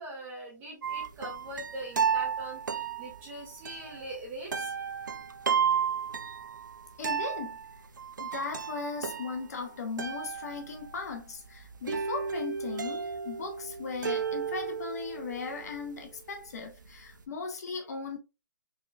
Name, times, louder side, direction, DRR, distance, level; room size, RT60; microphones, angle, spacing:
voice 1, 0.0-4.7, right 1 dB, 20° right, 1.7 m, -42 dB
sound 1, 0.8-17.2, right 6 dB, 85° right, 0.5 m, -33 dB
voice 2, 7.0-7.6 8.2-18.2, left 4 dB, 55° left, 1.2 m, -37 dB
4.3 x 3.8 x 2.2 m
hypercardioid pair, 150°, 10 cm